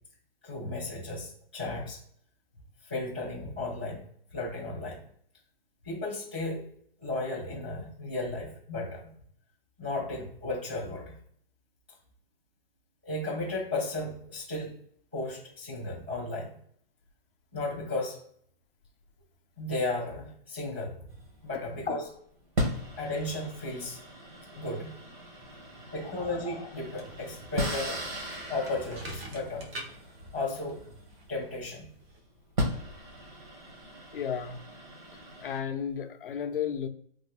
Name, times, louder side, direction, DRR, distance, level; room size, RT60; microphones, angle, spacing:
voice 1, 0.4-2.0 2.8-4.0 4.3-5.0 5.8-6.6 7.0-9.0 9.8-11.1 13.0-14.7 15.1-16.5 17.5-18.2 19.6-21.1 21.4-22.2 23.0-24.0 24.5-24.9 25.9-28.0 28.5-29.7 30.3-30.8 31.3-31.9, left 2 dB, 10° right, -9 dB, 0.3 m, -34 dB
sound 1, 21.1-21.9 22.6-31.7 32.2-32.3 32.6-35.6, equal, 50° right, 1.1 m, -37 dB
sound 2, 26.7-32.2, right 1 dB, 80° right, 1.3 m, -46 dB
voice 2, 34.1-34.6 35.4-36.9, left 8 dB, 65° left, 7 dB, 0.5 m, -33 dB
3.0 x 2.2 x 3.5 m, 0.63 s
hypercardioid pair, 180°, 30 cm